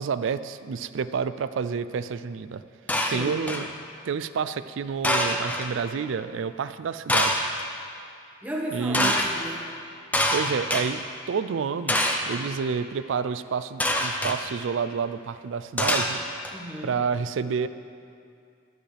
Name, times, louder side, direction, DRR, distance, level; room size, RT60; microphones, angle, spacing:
voice 1, 0.0-2.6 3.1-3.7 4.0-7.4 8.7-9.1 10.3-16.2 16.8-17.7, right 6 dB, 65° right, 14 dB, 0.4 m, -29 dB
sound 1, 2.9-3.7 5.0-5.7 7.1-7.6 8.9-9.3 10.1-10.8 11.9-12.4 13.8-14.4 15.8-16.5, left 1 dB, 10° left, 0.6 m, -25 dB
voice 2, 3.0-3.5 8.4-9.6 16.5-17.0, equal, 10° right, -3 dB, 1.5 m, -34 dB
13.5 x 10.0 x 3.4 m, 2.4 s
head